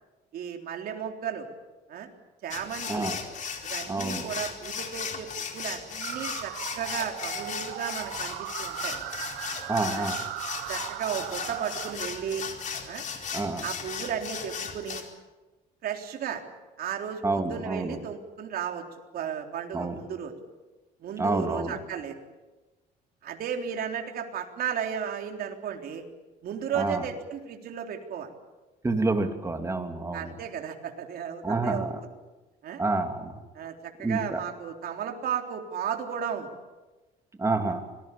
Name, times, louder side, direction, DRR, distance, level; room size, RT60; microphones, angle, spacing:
voice 1, 0.3-1.5 1.9-2.1 2.4-3.1 3.6-9.0 9.9-10.1 10.7-12.4 12.8-13.1 13.6-15.0 15.8-16.4 16.8-18.9 19.1-20.3 21.0-22.2 23.2-26.0 26.4-28.3 30.1-32.1 32.6-32.8 33.5-36.5, right 8 dB, 65° right, 3 dB, 3.7 m, -34 dB
sound 1, 2.5-15.0, left 6 dB, 50° left, 4.3 m, -36 dB
voice 2, 2.9-3.2 3.9-4.3 9.7-10.3 13.3-13.6 17.2-18.0 19.7-20.0 21.2-21.7 26.7-27.0 28.8-30.3 31.4-32.0 32.8-33.3 34.0-34.4 37.4-37.8, right 3 dB, 15° right, 5 dB, 3.0 m, -28 dB
sound 2, 6.0-11.9, right 17 dB, 90° right, 1.0 m, -38 dB
26.0 x 20.0 x 8.5 m, 1.1 s
cardioid pair, 110°, 17 cm